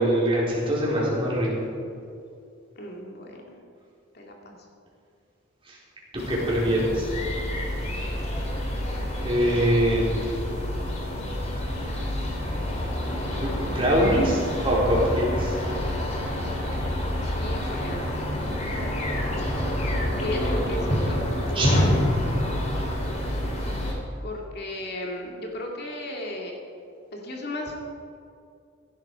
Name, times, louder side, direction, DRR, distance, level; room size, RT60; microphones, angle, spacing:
voice 1, 0.0-1.5 5.7-5.8 6.3-7.1 9.2-10.1 13.2-15.6 19.4-19.5 21.5-21.7, equal, 25° right, -6 dB, 4.3 m, -23 dB
voice 2, 2.8-3.6 4.1-4.6 9.4-9.7 17.2-18.4 20.2-21.2 21.4-22.0 24.2-26.6 27.1-27.8, left 1 dB, 50° left, 0 dB, 2.4 m, -35 dB
sound 1, 6.2-23.9, left 1 dB, 35° left, 2.8 m, -28 dB
16.0 x 12.0 x 4.9 m, 2.5 s
head